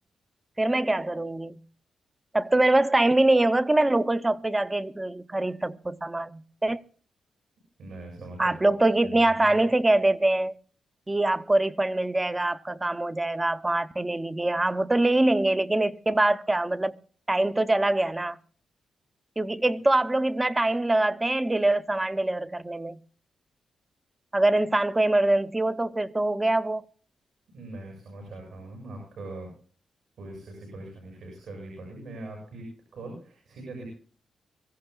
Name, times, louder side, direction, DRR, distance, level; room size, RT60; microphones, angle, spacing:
voice 1, 0.6-1.6 2.3-6.8 8.4-10.6 11.1-17.0 17.3-18.4 19.4-23.0 24.3-26.8, right 2 dB, 15° right, 0.6 m, -24 dB
voice 2, 7.8-8.8 9.0-9.5 27.5-29.5 30.2-33.9, right 2 dB, 70° right, 6.9 m, -42 dB
24.0 x 15.5 x 2.3 m
wide cardioid pair, 150°, 0 cm